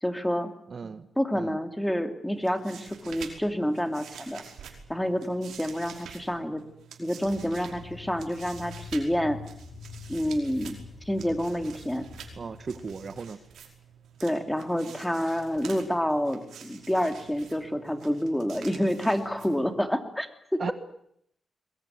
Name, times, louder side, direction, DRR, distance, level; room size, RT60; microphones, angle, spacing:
voice 1, 0.0-0.5 1.2-4.4 4.9-6.6 7.0-9.4 10.1-10.8 11.0-12.0 14.2-20.7, equal, 5° left, 7 dB, 2.9 m, -28 dB
voice 2, 0.7-1.1 1.3-1.6 12.3-13.4 20.6-20.7, right 5 dB, 45° right, 11 dB, 1.5 m, -36 dB
sound 1, 2.3-19.9, right 7 dB, 90° right, 5.3 m, -48 dB
sound 2, 7.2-13.2, left 5 dB, 65° left, 6.9 m, -46 dB
22.5 x 21.5 x 9.5 m, 0.72 s
cardioid pair, 105°, 0 cm